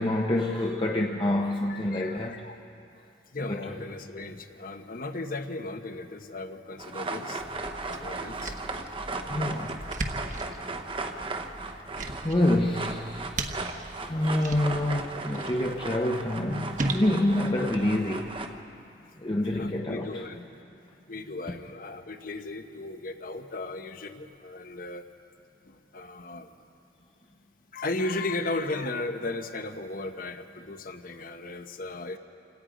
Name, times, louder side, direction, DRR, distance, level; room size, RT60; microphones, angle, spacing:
voice 1, 0.0-2.5 3.5-3.8 9.3-9.8 12.2-13.3 14.0-18.3 19.2-20.2, left 1 dB, 25° left, 1 dB, 0.8 m, -27 dB
voice 2, 1.7-2.6 3.3-7.4 8.0-8.5 14.1-14.3 19.0-19.2 19.5-20.6 21.1-25.0 25.6-26.5 27.7-32.2, left 2 dB, 50° left, 8 dB, 1.0 m, -36 dB
sound 1, 6.8-18.5, right 3 dB, 30° right, 0.9 m, -36 dB
sound 2, 7.4-18.6, right 2 dB, 45° right, 1.2 m, -38 dB
28.5 x 17.5 x 5.1 m, 2.8 s
head